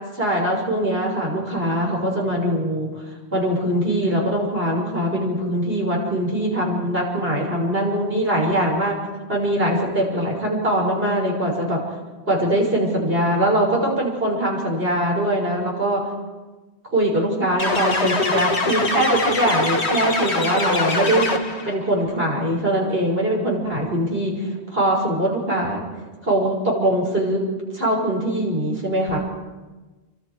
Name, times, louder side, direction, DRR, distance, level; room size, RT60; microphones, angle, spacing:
voice 1, 0.1-2.9 3.3-9.0 9.3-11.8 12.3-16.0 16.9-21.3 21.6-25.8 26.2-27.4 27.7-29.2, right 1 dB, 60° right, -2 dB, 6.2 m, -22 dB
sound 1, 17.6-21.7, left 2 dB, 80° left, 2.2 m, -22 dB
29.5 x 25.0 x 4.9 m, 1.2 s
omnidirectional pair, 1.1 m